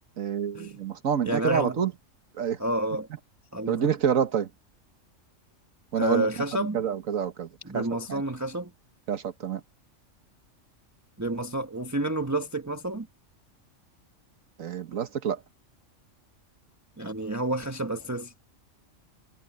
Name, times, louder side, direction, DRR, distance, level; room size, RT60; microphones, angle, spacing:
voice 1, 0.2-1.9 2.4-2.6 3.7-4.5 5.9-7.5 7.7-8.2 9.1-9.6 14.6-15.4, right 8 dB, 80° right, 1.6 m, -28 dB
voice 2, 1.2-1.8 2.6-3.1 3.5-3.9 6.0-6.8 7.6-8.7 11.2-13.1 17.0-18.3, right 1 dB, 15° right, 1.1 m, -29 dB
omnidirectional pair, 1.4 m